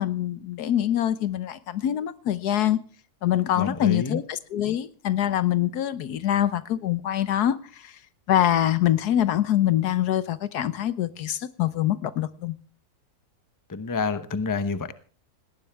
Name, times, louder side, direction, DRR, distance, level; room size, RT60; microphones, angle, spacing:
voice 1, 0.0-2.8 3.2-7.6 8.3-12.5, left 11 dB, 85° left, 1.4 m, -24 dB
voice 2, 3.6-4.2 13.7-14.9, left 4 dB, 20° left, 0.7 m, -28 dB
18.5 x 18.0 x 3.5 m
omnidirectional pair, 1.6 m